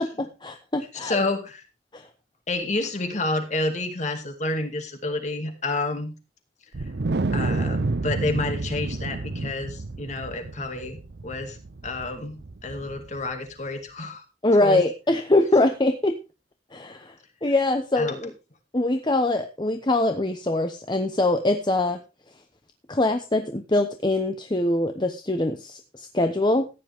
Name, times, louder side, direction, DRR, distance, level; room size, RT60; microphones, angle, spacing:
voice 1, 0.0-1.2 1.9-2.1 14.4-16.2 16.7-17.1 17.4-18.3 18.7-22.0 22.9-26.7, left 2 dB, 25° left, 6 dB, 0.9 m, -23 dB
voice 2, 0.9-1.6 2.5-6.1 7.3-11.6 11.8-14.2 14.6-14.8 18.0-18.2, left 2 dB, 40° left, 6 dB, 2.3 m, -29 dB
Wind, 6.7-13.3, right 3 dB, 65° right, 0.7 m, -29 dB
15.0 x 10.0 x 3.5 m, 0.29 s
head